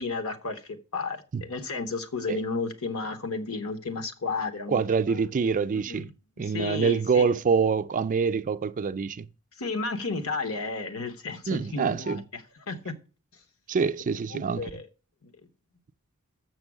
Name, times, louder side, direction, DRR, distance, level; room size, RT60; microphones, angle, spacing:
voice 1, 0.0-4.8 5.7-6.1 6.4-7.3 9.6-13.0 14.3-14.9 15.2-15.3, left 4 dB, 70° left, 1.2 m, -33 dB
voice 2, 4.7-6.1 6.4-9.3 11.5-12.2 13.7-14.7, right 5 dB, 35° right, 0.4 m, -25 dB
7.0 x 6.0 x 6.2 m
head